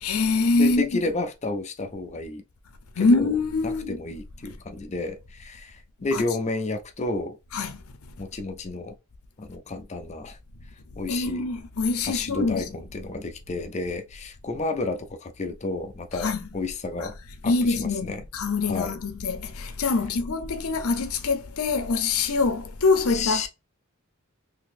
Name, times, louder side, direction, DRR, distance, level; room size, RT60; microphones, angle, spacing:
voice 1, 0.0-0.9 3.0-4.0 6.1-6.2 7.5-7.8 10.9-12.8 16.2-16.5 17.0-17.1 17.5-23.5, left 3 dB, 80° left, 0.7 m, -24 dB
voice 2, 0.6-2.4 3.0-3.3 3.6-7.4 8.2-9.0 9.4-10.4 11.0-11.5 12.1-17.2 17.4-18.2 18.7-19.0 23.1-23.5, left 3 dB, 30° left, 0.6 m, -31 dB
4.0 x 2.8 x 2.5 m
head